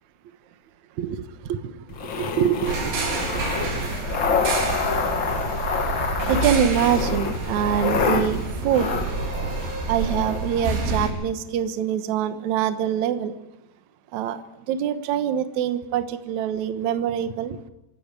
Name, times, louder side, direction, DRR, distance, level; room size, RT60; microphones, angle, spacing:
voice 1, 1.0-3.1 3.3-3.4 3.8-3.9 6.3-8.9 9.9-13.3 14.1-14.4 14.7-17.6, right 9 dB, 65° right, 10 dB, 1.9 m, -25 dB
sound 1, 1.9-10.4, left 5 dB, 70° left, 1.1 m, -27 dB
sound 2, 2.6-11.1, right 3 dB, 85° right, 6.2 m, -28 dB
27.0 x 13.5 x 8.3 m, 0.95 s
omnidirectional pair, 4.9 m